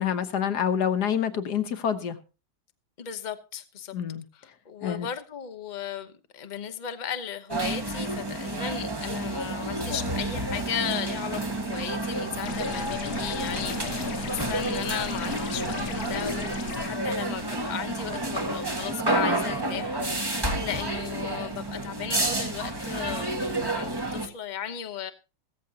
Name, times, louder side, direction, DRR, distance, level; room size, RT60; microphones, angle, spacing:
voice 1, 0.0-2.2 3.9-4.2 4.8-5.1, left 8 dB, 60° left, 1.6 m, -27 dB
voice 2, 3.0-3.9 4.4-25.1, left 9 dB, 35° left, 0.8 m, -36 dB
sound 1, 7.5-24.3, right 2 dB, 15° right, 1.3 m, -30 dB
sound 2, 12.5-16.9, left 9 dB, 85° left, 1.6 m, -37 dB
16.0 x 14.5 x 2.8 m
omnidirectional pair, 2.1 m